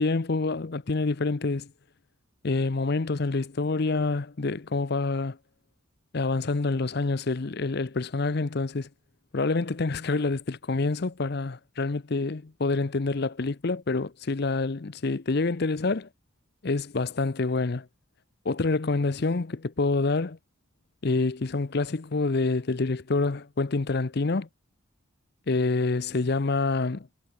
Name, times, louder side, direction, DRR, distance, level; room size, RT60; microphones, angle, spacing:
voice 1, 0.0-1.7 2.4-5.4 6.1-8.9 9.3-16.1 16.6-17.9 18.5-20.4 21.0-24.5 25.5-27.1, left 3 dB, 50° left, 0.7 m, -27 dB
head